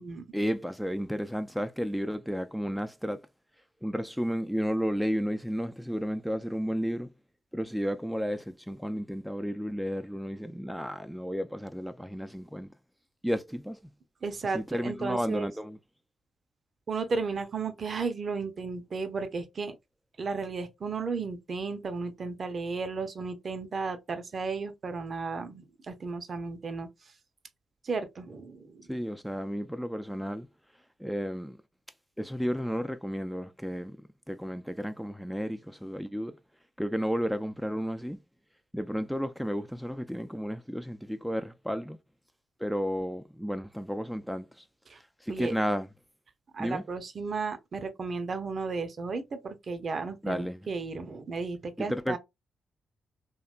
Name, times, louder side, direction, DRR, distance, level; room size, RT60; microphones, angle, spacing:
voice 1, 0.3-3.2 3.8-7.1 7.5-12.7 13.2-13.8 14.5-15.8 28.9-30.5 31.0-31.6 32.2-36.4 36.8-38.2 38.7-42.0 42.6-44.6 45.0-45.9 46.6-46.8 50.2-50.7 51.8-52.2, equal, ahead, 0.3 m, -32 dB
voice 2, 14.2-15.5 16.9-19.7 20.2-26.9 27.8-28.9 44.9-45.0 45.3-45.5 46.5-52.2, right 4 dB, 50° right, 0.5 m, -34 dB
2.7 x 2.2 x 2.3 m
hypercardioid pair, 40°, 0 cm